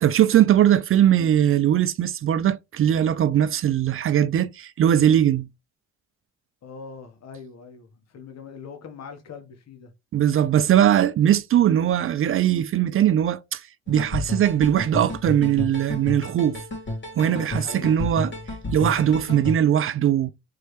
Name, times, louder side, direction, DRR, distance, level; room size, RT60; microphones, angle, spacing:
voice 1, 0.0-5.5 10.1-13.6 13.9-16.6 17.2-18.3 18.7-20.3, right 10 dB, 45° right, 0.4 m, -20 dB
voice 2, 6.6-9.9 17.2-18.1, left 5 dB, 60° left, 1.3 m, -41 dB
sound 1, 13.9-19.5, left 1 dB, 40° left, 2.4 m, -31 dB
4.2 x 3.2 x 3.2 m
cardioid pair, 90°, 30 cm